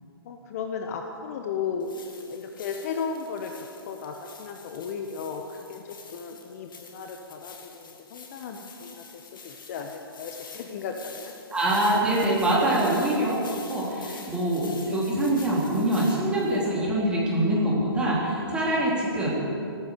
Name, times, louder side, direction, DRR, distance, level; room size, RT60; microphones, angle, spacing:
voice 1, 0.2-1.9 2.3-9.0 9.4-11.3, left 6 dB, 40° left, 4 dB, 1.2 m, -35 dB
sound 1, 1.8-16.7, left 5 dB, 55° left, 2.3 m, -47 dB
voice 2, 11.5-13.4 13.7-19.3, right 1 dB, 5° right, -5 dB, 3.8 m, -24 dB
15.0 x 14.0 x 6.8 m, 2.7 s
figure-of-eight pair, 130°, 13 cm